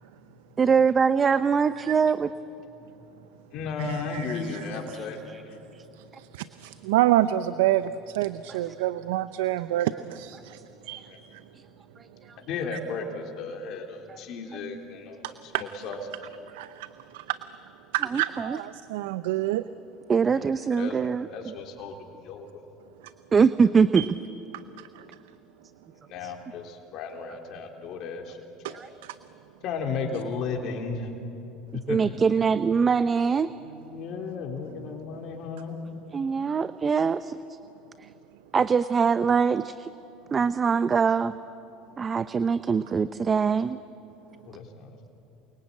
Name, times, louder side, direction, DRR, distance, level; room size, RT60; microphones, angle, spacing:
voice 1, 0.6-2.3 8.5-8.6 18.1-18.6 20.1-21.3 23.3-24.0 28.7-28.9 31.9-33.5 36.1-37.4 38.5-39.9 40.3-41.3 42.0-43.8, right 6 dB, 30° right, 13 dB, 0.7 m, -23 dB
voice 2, 3.5-5.6 11.1-11.2 12.4-16.0 20.3-21.0 21.3-22.6 26.1-28.9 29.6-31.1 31.7-32.1 33.9-35.8 44.4-45.1, left 4 dB, 60° left, 2 dB, 3.6 m, -35 dB
voice 3, 6.2-10.6 10.9-11.1 15.2-15.6 16.5-17.4 17.9-19.6 24.0-24.1 24.8-25.0 28.6-28.8 29.0-29.2, right 14 dB, 80° right, 14 dB, 0.6 m, -27 dB
28.5 x 22.5 x 8.7 m, 2.9 s
hypercardioid pair, 85°, 0 cm